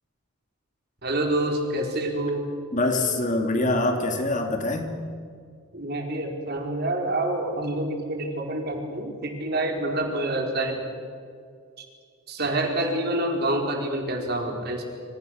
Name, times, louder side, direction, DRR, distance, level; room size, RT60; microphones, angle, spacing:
voice 1, 1.0-2.5 5.7-10.8 11.8-11.9 12.3-14.8, right 1 dB, 50° right, 2 dB, 4.6 m, -27 dB
voice 2, 2.7-4.9, left 2 dB, 35° left, 4 dB, 2.9 m, -24 dB
27.0 x 26.5 x 6.7 m, 2.2 s
head